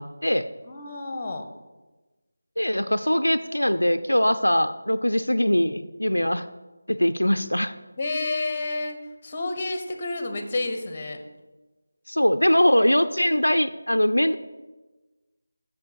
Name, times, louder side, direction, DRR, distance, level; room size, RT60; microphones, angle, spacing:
voice 1, 0.0-0.5 2.6-6.5 6.9-7.7 12.1-14.4, equal, 85° left, 10 dB, 0.5 m, -22 dB
voice 2, 0.7-1.5 8.0-11.2, left 2 dB, 25° left, 7 dB, 1.2 m, -30 dB
8.2 x 6.5 x 6.7 m, 1.2 s
figure-of-eight pair, 165°, 0 cm